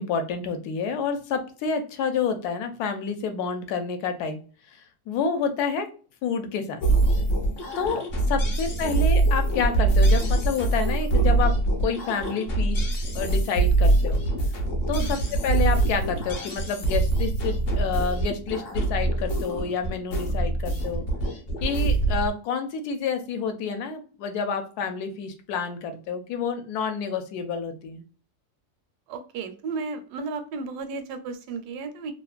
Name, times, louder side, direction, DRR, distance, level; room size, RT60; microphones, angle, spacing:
voice 1, 0.0-4.4 4.7-5.9 6.2-6.8 7.8-8.0 8.3-11.5 11.8-12.8 13.1-14.2 14.9-15.2 15.4-21.0 21.6-28.0, left 6 dB, 75° left, 7 dB, 1.1 m, -29 dB
sound 1, 6.8-22.3, right 2 dB, 55° left, 0.7 m, -24 dB
voice 2, 15.0-15.3 29.1-32.1, right 4 dB, 80° right, 9 dB, 1.1 m, -34 dB
2.9 x 2.1 x 2.3 m, 0.38 s
omnidirectional pair, 1.7 m